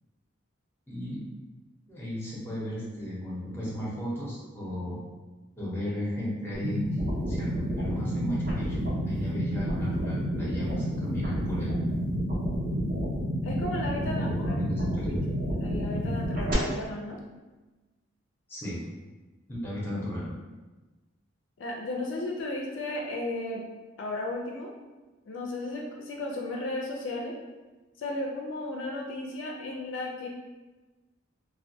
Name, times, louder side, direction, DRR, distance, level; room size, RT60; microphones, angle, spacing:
voice 1, 0.9-1.2 1.9-5.0 5.6-6.9 7.3-8.8 9.0-11.9 14.2-15.1 18.5-18.8 19.5-20.4, left 1 dB, 10° left, -6 dB, 0.6 m, -35 dB
sound 1, 6.5-16.5, equal, 45° right, 0.5 m, -30 dB
voice 2, 13.4-17.2 21.6-23.6 24.0-24.7 25.3-27.3 28.0-30.3, left 2 dB, 65° left, 0 dB, 0.4 m, -35 dB
2.2 x 2.2 x 2.6 m, 1.2 s
head